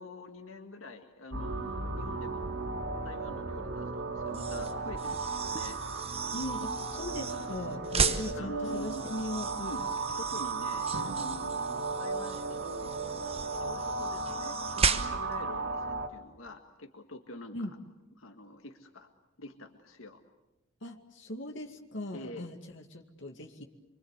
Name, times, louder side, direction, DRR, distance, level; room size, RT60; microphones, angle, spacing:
voice 1, 0.0-2.5 3.0-6.2 8.0-9.1 9.6-9.9 10.2-12.9 13.6-17.7 18.2-19.1 19.4-20.2 22.1-22.5, left 2 dB, 80° left, 5 dB, 1.9 m, -46 dB
sound 1, 1.3-16.1, right 3 dB, 70° right, 2.7 m, -35 dB
sound 2, 4.3-15.4, right 5 dB, 30° right, 1.1 m, -36 dB
voice 2, 6.3-9.5 17.5-17.7 20.8-23.6, left 1 dB, 60° left, 5 dB, 2.3 m, -39 dB
Drum, 10.9-13.1, right 2 dB, 85° right, 2.3 m, -46 dB
25.5 x 24.0 x 8.2 m, 0.95 s
head